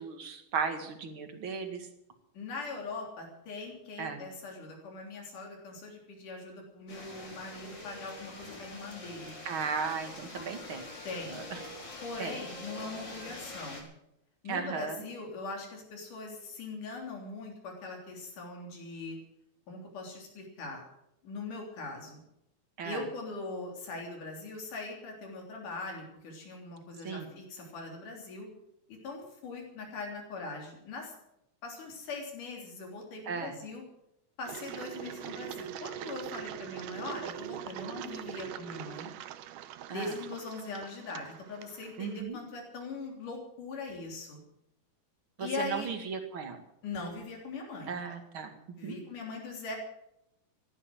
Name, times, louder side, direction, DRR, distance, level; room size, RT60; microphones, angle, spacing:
voice 1, 0.0-1.9 4.0-4.2 9.4-10.8 11.3-11.6 12.2-12.4 14.5-15.0 22.8-23.0 27.0-27.3 33.3-33.6 39.9-40.2 42.0-42.4 45.4-46.6 47.9-49.0, right 6 dB, 45° right, 6 dB, 2.6 m, -36 dB
voice 2, 2.3-9.4 11.0-11.5 12.0-13.9 14.4-19.2 19.7-20.8 21.2-22.2 22.8-28.5 28.9-31.1 31.6-33.8 34.4-39.1 39.9-44.4 45.4-45.9 46.8-48.0 48.8-49.8, left 3 dB, 90° left, 0 dB, 4.9 m, -41 dB
sound 1, 6.9-13.8, left 2 dB, 35° left, 4.4 m, -45 dB
Engine, 34.5-42.2, right 12 dB, 90° right, 2.4 m, -42 dB
15.5 x 11.5 x 7.6 m, 0.81 s
omnidirectional pair, 3.5 m